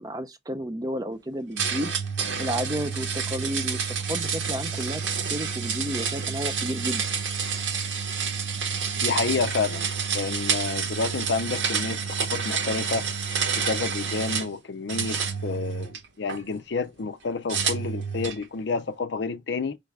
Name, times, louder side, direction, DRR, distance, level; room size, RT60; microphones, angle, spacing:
voice 1, 0.0-1.9 2.4-7.1, equal, 20° right, 0.5 m, -32 dB
sound 1, 1.6-14.5 14.9-16.4 17.5-18.4, right 6 dB, 85° right, 1.2 m, -29 dB
voice 2, 9.0-13.1 13.6-19.8, left 4 dB, 65° left, 0.5 m, -29 dB
5.3 x 2.3 x 3.2 m
head